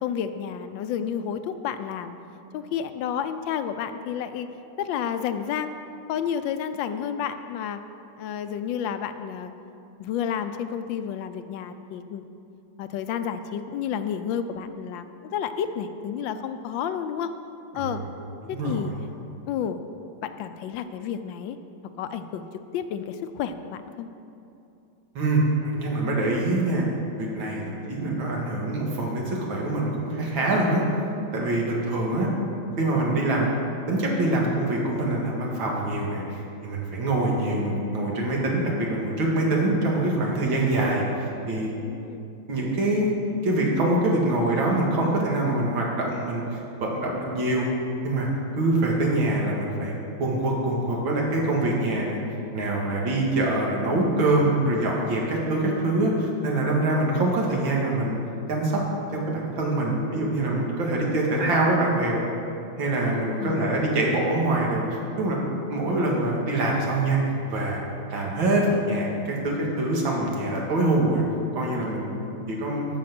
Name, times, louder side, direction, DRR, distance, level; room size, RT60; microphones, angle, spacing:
voice 1, 0.0-2.1 2.5-4.5 4.8-5.7 6.1-7.8 8.2-9.5 10.0-12.2 12.8-17.3 17.7-18.0 18.5-18.9 19.5-19.8 20.2-21.6 22.0-22.5 22.7-24.1 41.8-42.2 63.4-63.9, left 8 dB, 80° left, 10 dB, 1.3 m, -30 dB
voice 2, 18.5-19.0 25.1-26.8 27.2-27.6 27.9-30.8 31.3-32.3 32.8-33.5 33.9-41.7 42.5-47.7 48.0-48.3 48.5-52.2 52.5-58.1 58.5-58.8 59.1-62.2 62.8-65.4 65.7-67.2 67.5-67.8 68.1-71.2 71.6-72.9, right 2 dB, 85° right, -2 dB, 2.5 m, -24 dB
13.5 x 5.7 x 5.9 m, 2.7 s
omnidirectional pair, 2.1 m